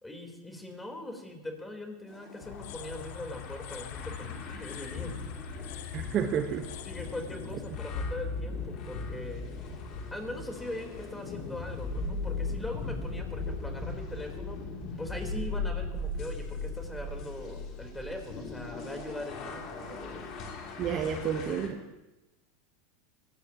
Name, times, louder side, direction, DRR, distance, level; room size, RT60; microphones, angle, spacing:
voice 1, 0.0-5.2 6.8-9.5 10.1-14.6 15.0-20.2, left 1 dB, 10° left, 2 dB, 4.1 m, -41 dB
sound 1, 2.1-21.7, left 3 dB, 45° left, 3.1 m, -38 dB
sound 2, 2.4-9.3, left 8 dB, 65° left, 0.9 m, -44 dB
voice 2, 5.9-6.7 20.8-21.8, right 8 dB, 40° right, 5 dB, 1.3 m, -30 dB
22.0 x 18.0 x 3.0 m, 1.0 s
hypercardioid pair, 90°, 0 cm